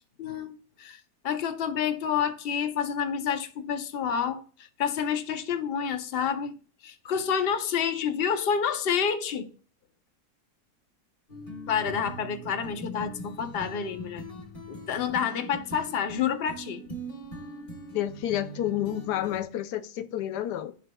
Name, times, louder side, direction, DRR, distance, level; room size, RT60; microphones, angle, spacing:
voice 1, 0.2-6.6 6.8-9.5 11.7-14.2 14.7-16.8, left 7 dB, 55° left, 0.6 m, -29 dB
sound 1, 11.3-19.4, equal, 30° left, 1.6 m, -41 dB
voice 2, 17.9-20.7, left 12 dB, 90° left, 1.2 m, -30 dB
12.0 x 4.8 x 2.2 m
omnidirectional pair, 1.7 m